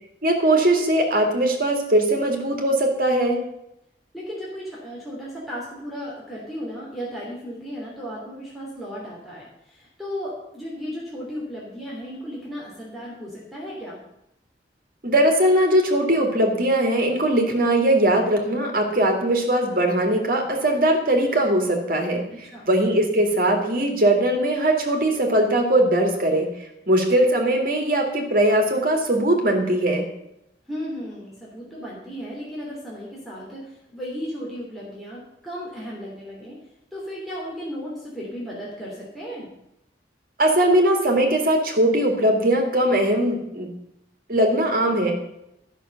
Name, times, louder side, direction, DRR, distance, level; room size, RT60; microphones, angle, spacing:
voice 1, 0.2-3.4 15.0-22.3 22.7-26.5 26.9-30.1 40.4-43.7 44.3-45.2, right 1 dB, 55° right, 3 dB, 2.3 m, -20 dB
voice 2, 4.1-14.0 22.3-22.7 30.7-36.6 36.9-39.5, equal, ahead, -6 dB, 3.1 m, -35 dB
13.0 x 6.5 x 7.8 m, 0.84 s
head